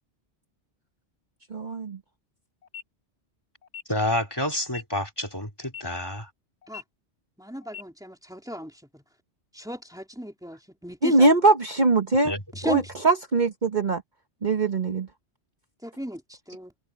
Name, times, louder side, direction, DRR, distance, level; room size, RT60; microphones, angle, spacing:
voice 1, 1.5-2.0 11.0-12.3 12.7-14.0 14.4-15.1, right 2 dB, 45° right, 1.3 m, -21 dB
sound 1, 2.6-2.8 3.6-3.8 4.6-4.8 5.6-5.8 6.6-6.8 7.6-7.8, left 8 dB, 85° left, 2.1 m, -40 dB
voice 2, 3.9-6.3 12.2-12.4, left 1 dB, 20° left, 3.1 m, -28 dB
voice 3, 7.4-9.0 9.5-11.3 12.5-12.8 15.8-16.7, equal, 5° right, 3.3 m, -35 dB
open air
omnidirectional pair, 1.1 m